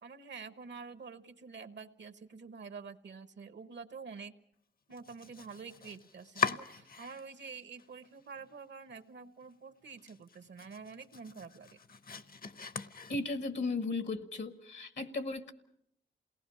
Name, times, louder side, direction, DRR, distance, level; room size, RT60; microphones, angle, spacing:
voice 1, 0.0-4.4 4.9-11.8, right 5 dB, 70° right, 11 dB, 1.0 m, -48 dB
Domestic sounds home sounds, 4.9-7.5 7.8-8.5 8.9-9.0 9.4-9.5 9.9-13.6, left 6 dB, 50° left, 0.8 m, -40 dB
voice 2, 13.1-15.5, left 3 dB, 70° left, 9 dB, 1.3 m, -36 dB
28.5 x 19.0 x 5.6 m, 0.73 s
wide cardioid pair, 85°, 19 cm